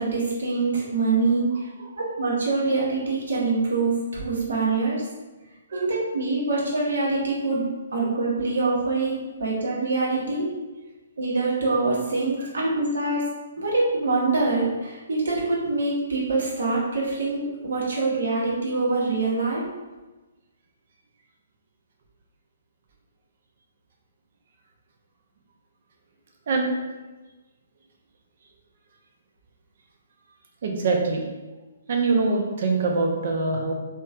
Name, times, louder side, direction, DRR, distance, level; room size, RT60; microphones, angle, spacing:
voice 1, 0.0-1.5 2.2-5.0 5.7-7.6 7.9-10.5 11.2-13.2 13.6-19.6, right 3 dB, 65° right, -4 dB, 1.0 m, -24 dB
voice 2, 30.6-31.3 31.9-33.7, right 3 dB, 50° right, 1 dB, 0.6 m, -24 dB
3.2 x 2.9 x 2.3 m, 1.2 s
figure-of-eight pair, 130°, 0 cm